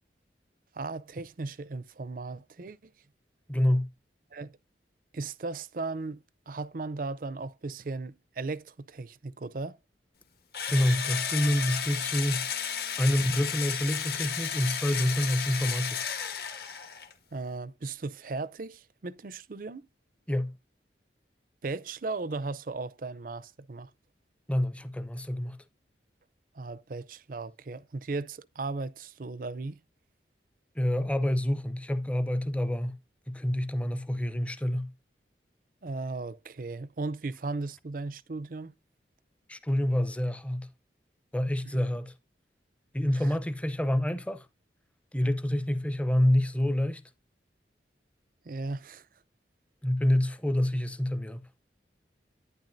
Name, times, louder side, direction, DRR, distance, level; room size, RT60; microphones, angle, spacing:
voice 1, 0.7-2.9 4.3-4.6 5.1-9.8 17.3-19.9 21.6-23.9 26.6-29.8 35.8-38.7 48.5-49.0, right 3 dB, 50° right, 0.5 m, -36 dB
voice 2, 3.5-3.9 10.7-12.5 13.0-16.0 20.3-20.6 24.5-25.6 30.7-32.9 33.3-34.9 39.5-40.7 41.3-42.1 42.9-44.5 45.1-47.0 49.8-51.4, left 1 dB, 5° left, 0.6 m, -27 dB
Engine / Drill, 10.5-17.1, left 8 dB, 60° left, 1.7 m, -33 dB
10.5 x 9.7 x 2.6 m
head